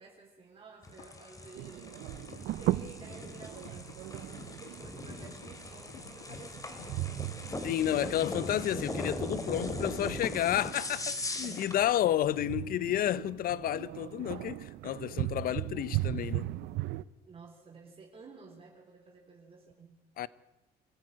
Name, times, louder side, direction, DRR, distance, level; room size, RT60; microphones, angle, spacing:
voice 1, 0.0-2.1 2.6-7.3 11.9-12.3 14.2-14.4 15.1-15.3 17.3-20.0, right 4 dB, 35° right, 4.0 m, -53 dB
sound 1, 0.8-11.8, left 1 dB, 20° left, 2.9 m, -40 dB
sound 2, 1.0-14.9 16.7-16.8, left 9 dB, 80° left, 1.4 m, -53 dB
sound 3, 1.5-17.0, right 16 dB, 80° right, 0.7 m, -38 dB
voice 2, 7.6-16.5 20.2-20.3, left 12 dB, 60° left, 0.8 m, -31 dB
25.5 x 16.0 x 9.0 m
cardioid pair, 110°, 17 cm